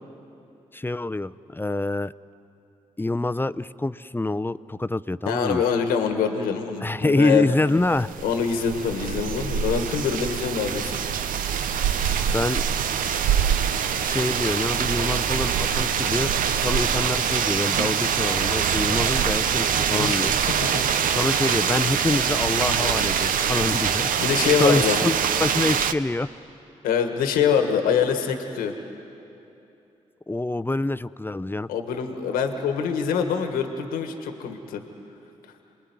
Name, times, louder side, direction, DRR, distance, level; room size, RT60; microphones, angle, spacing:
voice 1, 0.7-2.1 3.0-5.6 6.8-8.1 12.3-12.6 14.0-20.4 21.1-24.1 24.6-26.3 30.3-31.7, left 2 dB, 15° left, 14 dB, 0.7 m, -26 dB
voice 2, 5.3-7.5 8.2-11.0 19.9-20.8 24.2-25.0 26.8-28.8 31.7-34.8, left 7 dB, 85° left, 6 dB, 1.5 m, -24 dB
sound 1, 7.8-25.9, right 8 dB, 70° right, 0.8 m, -24 dB
27.5 x 20.5 x 9.6 m, 2.8 s
hypercardioid pair, 40°, 15 cm